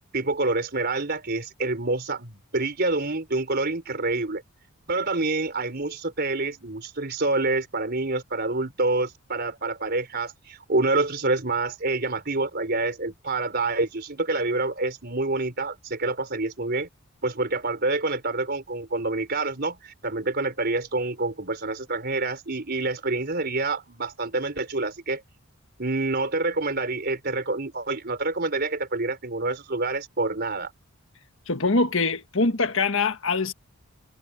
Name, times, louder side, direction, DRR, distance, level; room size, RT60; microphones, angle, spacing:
voice 1, 0.1-4.4 4.9-16.9 17.2-25.2 25.8-30.7, right 2 dB, 45° right, 4.3 m, -27 dB
voice 2, 31.5-33.5, left 3 dB, 60° left, 1.7 m, -23 dB
head